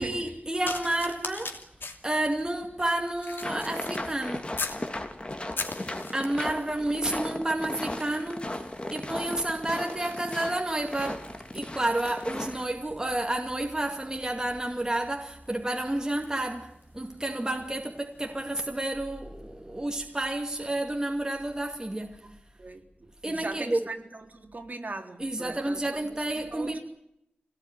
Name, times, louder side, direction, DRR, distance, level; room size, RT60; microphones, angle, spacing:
voice 1, 0.0-1.6 2.0-4.5 6.1-8.7 8.9-22.2 23.2-23.8 25.2-26.8, right 1 dB, 20° right, 2.3 m, -30 dB
sound 1, 0.6-4.9 5.3-6.5 7.3-7.6 7.8-17.5 18.2-18.4, left 3 dB, 90° left, 2.9 m, -42 dB
sound 2, 3.4-12.6, left 1 dB, 30° left, 2.8 m, -36 dB
voice 2, 5.8-6.3 22.2-26.8, right 3 dB, 50° right, 3.9 m, -41 dB
26.0 x 18.5 x 9.5 m
wide cardioid pair, 80°, 3 cm